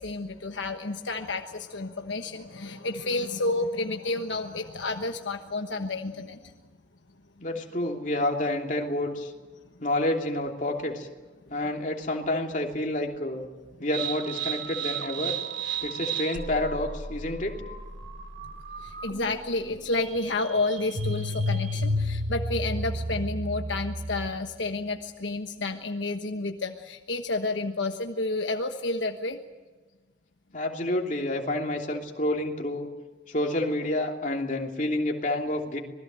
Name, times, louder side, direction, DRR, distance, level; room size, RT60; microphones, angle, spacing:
voice 1, 0.0-6.5 18.4-18.5 18.8-29.4, left 2 dB, 75° left, 5 dB, 1.2 m, -30 dB
voice 2, 7.4-9.3 9.8-11.1 11.5-13.4 13.8-15.3 15.8-17.5 30.5-32.9 33.3-35.8, left 1 dB, 40° left, 1 dB, 3.0 m, -29 dB
sound 1, 13.9-24.5, right 1 dB, 80° right, 2.6 m, -32 dB
26.0 x 20.5 x 7.6 m, 1.2 s
head